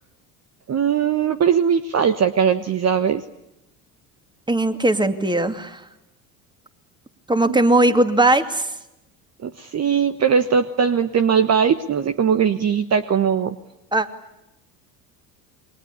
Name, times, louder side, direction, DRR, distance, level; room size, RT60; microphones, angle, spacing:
voice 1, 0.7-3.2 7.5-7.6 9.4-13.5, right 7 dB, 35° right, 10 dB, 1.4 m, -20 dB
voice 2, 4.5-5.8 7.3-8.7 13.9-14.1, right 2 dB, 10° right, 9 dB, 2.6 m, -18 dB
29.0 x 23.0 x 8.4 m, 0.92 s
hypercardioid pair, 65°, 46 cm